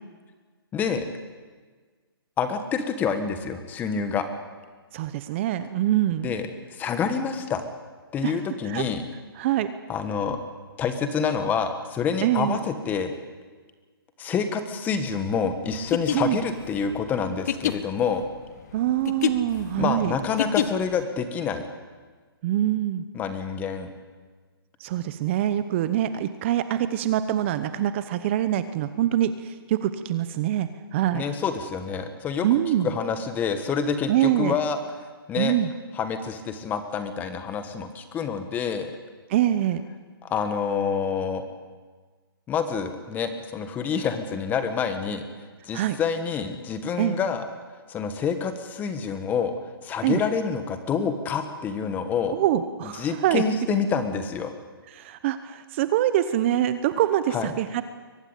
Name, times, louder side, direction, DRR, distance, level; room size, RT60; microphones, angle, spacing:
voice 1, 0.7-1.0 2.4-4.3 6.2-7.6 8.1-9.0 9.9-10.4 10.8-13.1 14.2-18.2 19.8-21.6 23.1-23.9 31.1-32.5 32.8-34.8 35.3-35.5 36.0-38.9 40.2-41.4 42.5-45.2 45.7-47.4 47.9-49.5 49.8-52.4 53.0-54.5 57.3-57.5, left 6 dB, 15° left, 9 dB, 1.6 m, -27 dB
voice 2, 4.9-6.3 8.2-8.4 8.6-8.8 9.4-9.7 12.2-12.6 16.1-16.4 18.7-20.2 22.4-23.0 24.8-31.2 32.4-32.9 34.1-34.6 35.4-35.7 39.3-39.8 45.7-46.0 47.0-47.2 50.0-50.2 52.3-53.4 54.9-57.8, right 12 dB, 30° right, 12 dB, 0.9 m, -24 dB
sound 1, 15.8-21.0, left 10 dB, 45° left, 1.4 m, -28 dB
23.0 x 19.5 x 8.4 m, 1.5 s
hypercardioid pair, 155°, 13 cm